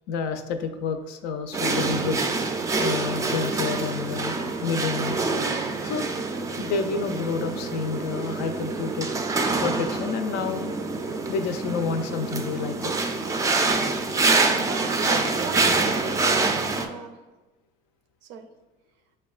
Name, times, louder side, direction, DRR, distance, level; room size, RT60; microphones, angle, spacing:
voice 1, 0.1-2.2 2.8-5.3 5.8-6.1 6.6-9.1 9.6-10.7 11.3-13.0, left 5 dB, 80° left, 8 dB, 0.4 m, -29 dB
sound 1, 1.5-16.9, right 3 dB, 20° right, 0.3 m, -26 dB
voice 2, 14.7-16.5 16.8-17.2 18.2-18.5, right 7 dB, 80° right, 8 dB, 0.4 m, -37 dB
6.2 x 2.2 x 2.3 m, 1.2 s
supercardioid pair, 105°, 18 cm